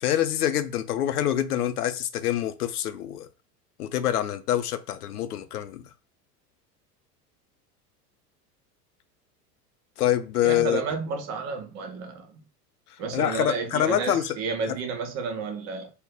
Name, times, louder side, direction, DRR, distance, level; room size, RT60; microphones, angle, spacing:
voice 1, 0.0-3.3 3.8-5.8 10.0-10.8 13.1-14.3 14.7-14.8, left 11 dB, 70° left, 0.5 m, -26 dB
voice 2, 10.4-12.4 13.0-15.9, right 4 dB, 35° right, 0.7 m, -31 dB
2.5 x 2.2 x 3.6 m
figure-of-eight pair, 75°, 47 cm